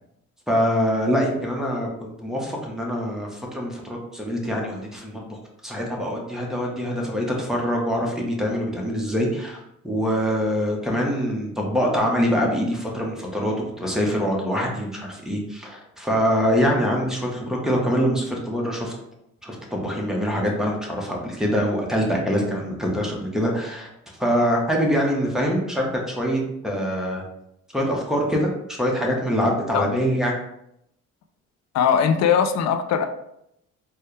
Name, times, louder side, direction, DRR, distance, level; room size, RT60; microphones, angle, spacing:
voice 1, 0.5-9.6 9.8-18.9 19.4-23.9 24.2-27.2 27.7-28.5 28.8-30.4, equal, ahead, -2 dB, 1.0 m, -24 dB
voice 2, 31.7-33.1, left 7 dB, 60° left, 7 dB, 0.4 m, -20 dB
4.3 x 2.3 x 3.2 m, 0.79 s
cardioid pair, 90°, 30 cm